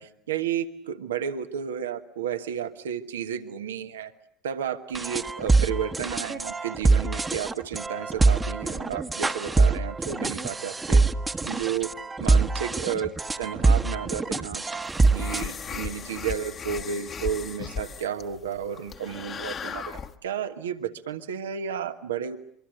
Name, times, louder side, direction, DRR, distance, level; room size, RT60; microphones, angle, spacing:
voice 1, 0.0-4.1 4.4-11.1 11.4-11.9 12.2-13.1 13.4-14.6 15.0-22.4, right 8 dB, 90° right, 9 dB, 1.2 m, -32 dB
sound 1, 4.9-15.4, right 3 dB, 20° right, 1.1 m, -24 dB
sound 2, 14.8-20.2, left 6 dB, 40° left, 1.3 m, -36 dB
24.0 x 23.5 x 7.8 m, 0.70 s
hypercardioid pair, 80°, 0 cm